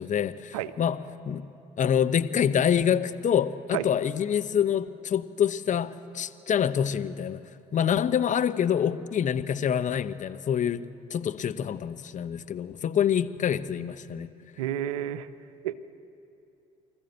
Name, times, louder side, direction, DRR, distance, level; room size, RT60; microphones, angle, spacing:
voice 1, 0.0-1.5 1.8-7.4 7.7-10.8 11.1-14.3, left 8 dB, 45° left, 12 dB, 0.9 m, -26 dB
voice 2, 14.6-15.3 15.6-15.7, right 11 dB, 80° right, 15 dB, 0.7 m, -30 dB
25.0 x 14.0 x 8.0 m, 2.8 s
hypercardioid pair, 55°, 18 cm